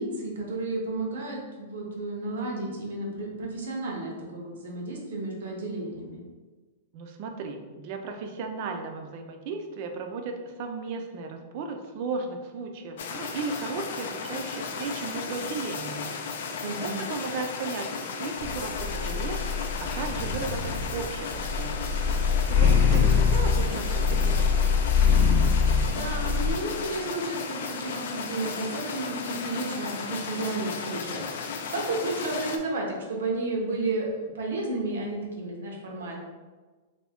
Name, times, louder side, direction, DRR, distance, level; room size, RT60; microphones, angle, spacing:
voice 1, 0.0-6.2 16.6-17.0 25.9-36.2, right 2 dB, 90° right, 0 dB, 0.8 m, -32 dB
voice 2, 6.9-16.2 16.8-21.9 22.5-25.0, right 4 dB, 40° right, 4 dB, 0.4 m, -35 dB
sound 1, 13.0-32.6, left 5 dB, 65° left, 0.3 m, -35 dB
sound 2, 18.4-26.5, left 6 dB, 40° left, 0.8 m, -24 dB
sound 3, 21.4-24.3, equal, 5° left, 0.6 m, -47 dB
2.6 x 2.6 x 3.4 m, 1.3 s
supercardioid pair, 165°, 0 cm